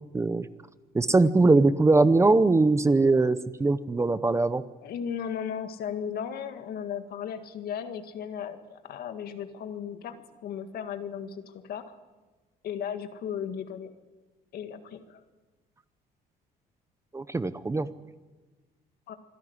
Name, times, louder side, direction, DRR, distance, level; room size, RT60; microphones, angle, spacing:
voice 1, 0.1-0.5 0.9-4.6 17.1-17.9, right 3 dB, 15° right, 14 dB, 0.8 m, -21 dB
voice 2, 4.8-12.0 12.6-13.9 14.5-15.2 19.1-19.2, left 8 dB, 65° left, 8 dB, 1.9 m, -36 dB
26.0 x 11.0 x 9.7 m, 1.3 s
cardioid pair, 110°, 17 cm